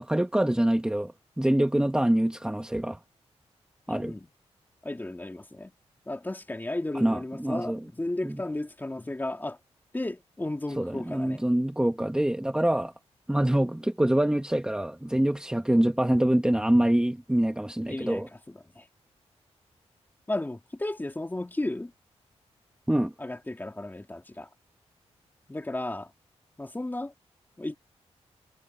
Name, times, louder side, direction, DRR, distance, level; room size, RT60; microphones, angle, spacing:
voice 1, 0.0-3.0 3.9-4.1 6.9-7.8 8.2-8.4 10.8-12.9 13.3-18.3 22.9-23.1, right 1 dB, 5° right, 1.4 m, -25 dB
voice 2, 3.9-4.3 4.8-5.7 6.1-9.6 9.9-11.4 17.9-18.8 20.3-21.9 23.2-24.5 25.5-26.1 26.6-27.1 27.6-27.8, left 2 dB, 15° left, 2.8 m, -34 dB
cardioid pair, 85°, 11 cm